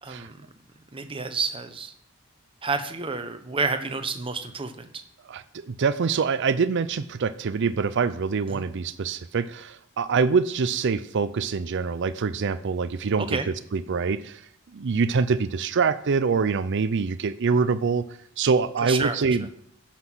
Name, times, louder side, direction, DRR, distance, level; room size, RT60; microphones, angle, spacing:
voice 1, 0.0-0.4 0.9-1.9 2.6-4.9 8.5-8.6 13.3-13.5 18.8-19.2, right 4 dB, 25° right, 8 dB, 1.0 m, -29 dB
voice 2, 5.3-14.4 14.7-18.0 18.4-19.5, right 5 dB, 60° right, 13 dB, 0.5 m, -25 dB
15.5 x 5.9 x 6.2 m, 0.68 s
head